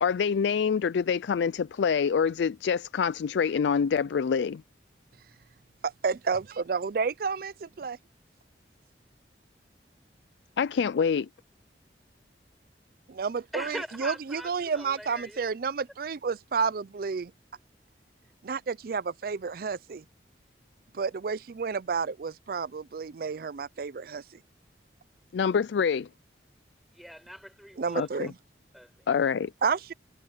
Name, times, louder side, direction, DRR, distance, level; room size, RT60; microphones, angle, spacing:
voice 1, 0.0-4.6 10.6-11.3 25.3-26.1 27.9-28.3 29.1-29.5, left 6 dB, 85° left, 0.4 m, -26 dB
voice 2, 5.8-8.0 13.1-17.3 18.4-20.0 20.9-24.2 27.8-28.4 29.6-29.9, right 5 dB, 55° right, 0.4 m, -31 dB
voice 3, 13.5-15.4 26.9-28.1 28.7-29.1, equal, ahead, 6.3 m, -41 dB
head